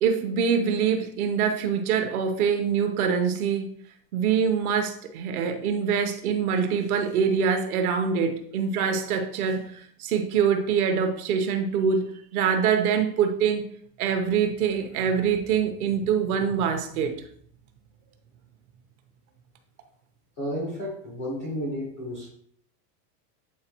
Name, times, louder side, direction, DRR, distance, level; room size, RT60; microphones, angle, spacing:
voice 1, 0.0-3.7 4.1-13.7 14.0-17.2, right 7 dB, 60° right, 6 dB, 1.1 m, -24 dB
voice 2, 20.4-22.3, equal, 10° left, -4 dB, 0.3 m, -32 dB
8.6 x 4.2 x 3.0 m, 0.62 s
supercardioid pair, 175°, 50 cm